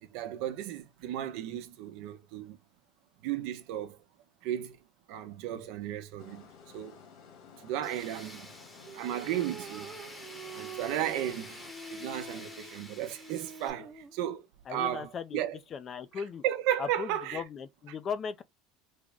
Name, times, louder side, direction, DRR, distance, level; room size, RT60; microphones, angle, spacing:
voice 1, 0.0-2.6 3.2-4.0 4.4-4.8 5.1-7.0 7.6-8.5 8.9-9.9 10.5-11.6 11.9-14.4 14.7-15.6 16.2-17.4, right 11 dB, 70° right, 0.7 m, -34 dB
sound 1, 6.2-11.7, left 6 dB, 70° left, 1.5 m, -54 dB
Tools, 7.8-13.7, left 1 dB, 10° left, 0.8 m, -48 dB
sound 2, 8.8-14.2, right 4 dB, 20° right, 0.7 m, -46 dB
voice 2, 14.7-15.4 15.7-16.4 16.8-18.4, left 6 dB, 30° left, 0.4 m, -37 dB
3.6 x 2.1 x 3.4 m
cardioid pair, 150°, 0 cm